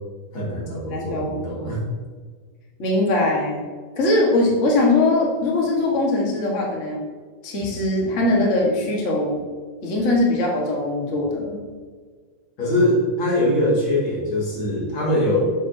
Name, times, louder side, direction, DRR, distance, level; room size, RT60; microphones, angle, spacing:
voice 1, 0.3-1.8 12.6-15.4, left 1 dB, 45° left, -3 dB, 2.2 m, -22 dB
voice 2, 0.9-1.8 2.8-3.6 4.0-7.0 7.4-9.4 9.8-11.6, left 2 dB, 70° left, -2 dB, 0.6 m, -21 dB
8.4 x 7.8 x 2.7 m, 1.5 s
omnidirectional pair, 3.7 m